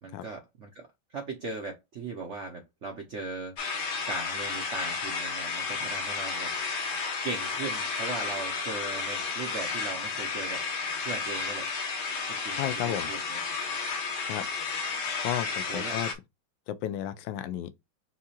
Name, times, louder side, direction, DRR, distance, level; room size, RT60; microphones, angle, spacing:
voice 1, 0.0-3.6 4.1-6.5 7.2-10.6 11.0-11.7 12.3-13.4 15.7-16.0, right 3 dB, 60° right, 0.7 m, -38 dB
sound 1, 3.6-16.1, left 4 dB, 60° left, 1.5 m, -32 dB
voice 2, 12.6-13.1 14.3-14.5 15.2-16.1 16.7-17.7, left 11 dB, 75° left, 1.2 m, -33 dB
5.9 x 2.8 x 2.8 m
omnidirectional pair, 2.3 m